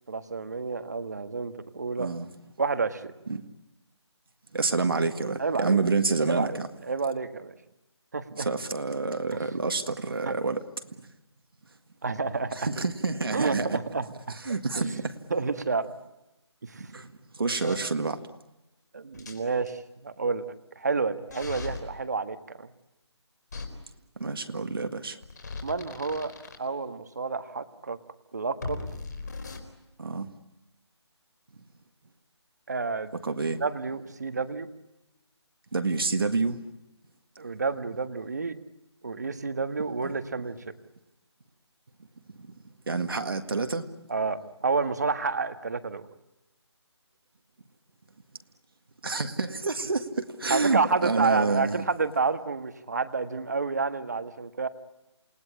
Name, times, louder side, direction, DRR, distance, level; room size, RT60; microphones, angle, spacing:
voice 1, 0.1-2.1 2.6-3.1 5.4-5.8 6.3-6.6 6.9-7.5 8.1-8.5 9.3-9.4 10.2-10.3 12.0-12.7 13.3-14.4 14.8-15.0 15.3-15.9 16.6-16.9 17.6-17.8 18.9-22.7 25.6-26.3 26.6-28.0 28.3-28.9 32.7-33.1 33.6-34.7 37.4-38.6 39.0-40.7 44.1-46.1 50.5-54.7, right 4 dB, 35° right, 1.5 m, -29 dB
voice 2, 2.0-2.3 3.3-3.4 4.5-6.7 8.4-10.6 10.9-11.1 12.5-13.8 14.4-15.1 16.8-18.2 24.2-25.2 30.0-30.3 33.2-33.6 35.7-36.7 40.0-40.1 42.4-42.5 42.9-43.9 49.0-51.9, right 4 dB, 55° right, 1.8 m, -28 dB
sound 1, 17.5-17.7 19.1-19.7 21.3-21.8 23.5-23.7 25.2-26.6 28.6-29.6, left 3 dB, 40° left, 4.2 m, -38 dB
28.5 x 20.0 x 10.0 m
hypercardioid pair, 180°, 15 cm